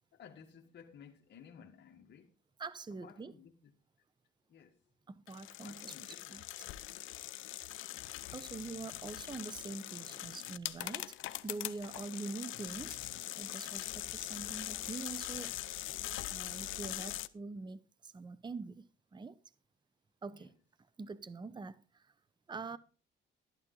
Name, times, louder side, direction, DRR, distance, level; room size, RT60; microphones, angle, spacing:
voice 1, 0.1-2.3 3.0-3.7 4.5-4.8 5.6-6.8 15.9-16.4 20.2-20.5 22.7-22.8, left 7 dB, 60° left, 1.6 m, -57 dB
voice 2, 2.6-3.3 5.1-6.4 8.3-11.2 11.4-15.5 16.3-19.4 20.2-20.5 21.0-22.1 22.5-22.8, right 4 dB, 20° right, 0.8 m, -45 dB
sound 1, 5.3-17.3, left 15 dB, 85° left, 0.7 m, -42 dB
12.5 x 11.5 x 3.9 m
cardioid pair, 90°, 20 cm